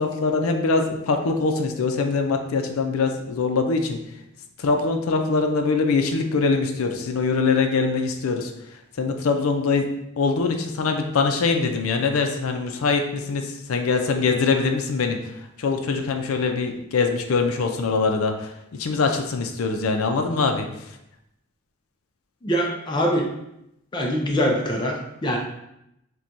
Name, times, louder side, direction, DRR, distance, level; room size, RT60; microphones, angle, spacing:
voice 1, 0.0-4.0 4.6-8.5 9.0-9.9 10.2-15.2 15.6-20.7, left 4 dB, 80° left, 4 dB, 0.5 m, -23 dB
voice 2, 22.4-23.3 23.9-25.4, equal, 20° left, 0 dB, 0.4 m, -23 dB
5.8 x 2.2 x 2.5 m, 0.83 s
head